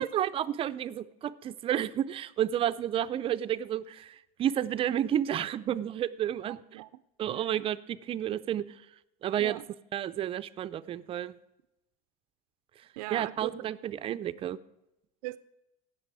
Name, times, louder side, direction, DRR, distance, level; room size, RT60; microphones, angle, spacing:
voice 1, 0.0-6.6 7.2-8.6 9.2-9.6 9.9-11.3 13.1-14.6, right 11 dB, 30° right, 0.4 m, -31 dB
voice 2, 6.5-6.9 7.3-7.7 9.4-9.6 13.0-13.6 15.2-15.4, right 18 dB, 85° right, 0.4 m, -39 dB
17.0 x 6.8 x 4.7 m
supercardioid pair, 140°, 19 cm